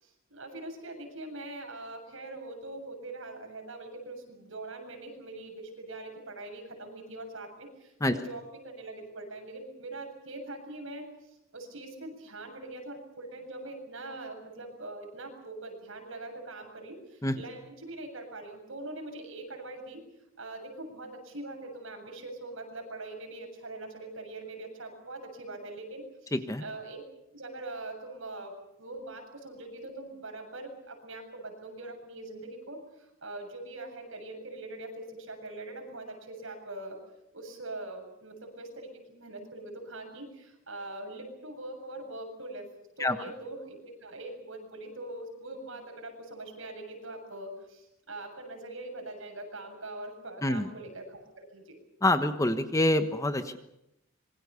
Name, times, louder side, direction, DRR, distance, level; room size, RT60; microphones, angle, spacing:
voice 1, 0.0-20.0 20.4-26.3 26.6-27.0 27.3-28.5 28.8-37.0 37.3-42.7 43.0-51.8, right 2 dB, 65° right, 3 dB, 7.7 m, -42 dB
voice 2, 26.3-26.6 43.0-43.2 50.4-50.7 52.0-53.6, left 1 dB, 15° left, 8 dB, 1.2 m, -26 dB
26.5 x 23.0 x 7.0 m, 0.85 s
head